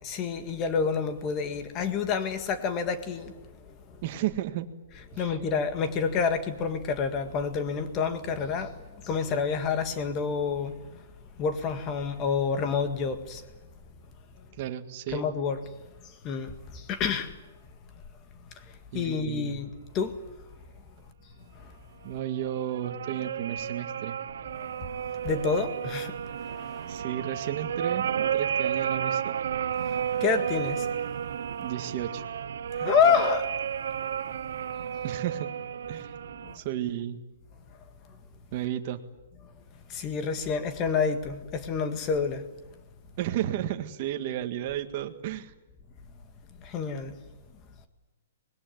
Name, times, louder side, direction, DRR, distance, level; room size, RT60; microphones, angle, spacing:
voice 1, 0.0-3.3 5.1-8.7 9.0-10.8 11.4-13.4 15.1-15.6 16.2-17.4 18.9-19.7 19.9-20.2 24.5-24.7 25.2-26.2 26.5-26.9 30.2-30.9 32.8-33.5 36.4-36.5 39.9-42.4 46.6-47.1, left 6 dB, 20° left, 1.9 m, -28 dB
voice 2, 4.0-4.7 5.1-5.3 14.6-15.3 18.9-19.6 22.0-24.2 26.9-29.4 31.6-32.2 35.0-35.5 35.9-36.1 36.5-37.2 38.5-39.0 43.2-45.5, right 11 dB, 35° right, 1.8 m, -33 dB
sound 1, 22.2-36.6, right 8 dB, 65° right, 0.8 m, -32 dB
25.0 x 21.5 x 9.4 m
hypercardioid pair, 175°, 0 cm